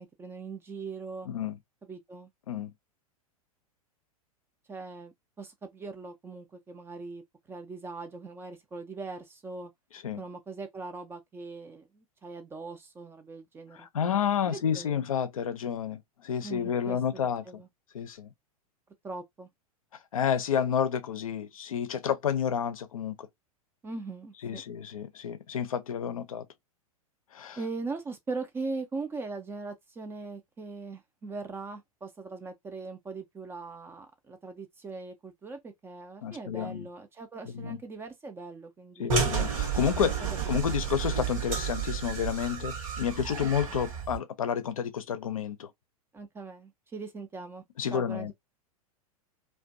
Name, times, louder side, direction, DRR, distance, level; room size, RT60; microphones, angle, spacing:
voice 1, 0.0-1.3 1.8-2.3 4.7-7.2 7.5-9.7 10.1-13.9 14.5-15.1 16.4-17.7 19.0-19.5 23.8-24.6 27.6-39.2 40.0-41.0 43.4-43.5 46.1-47.6 47.9-48.3, right 3 dB, 10° right, 0.4 m, -40 dB
voice 2, 13.8-17.4 17.9-18.3 20.1-23.3 24.4-26.4 27.3-27.6 36.2-36.9 37.5-37.8 39.0-40.1 40.5-45.7 47.8-48.3, left 8 dB, 65° left, 0.5 m, -30 dB
sound 1, 39.1-44.2, right 6 dB, 60° right, 1.0 m, -31 dB
2.5 x 2.2 x 2.5 m
figure-of-eight pair, 95°, 19 cm